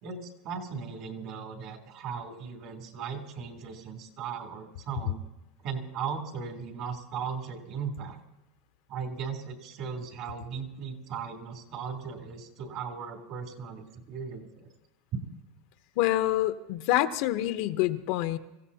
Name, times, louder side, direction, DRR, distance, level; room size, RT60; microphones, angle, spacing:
voice 1, 0.0-5.2 5.6-8.2 8.9-14.7, right 6 dB, 55° right, 4 dB, 3.2 m, -37 dB
voice 2, 16.0-18.4, left 14 dB, 65° left, 10 dB, 0.9 m, -26 dB
26.0 x 16.0 x 2.9 m, 0.98 s
supercardioid pair, 135°, 0 cm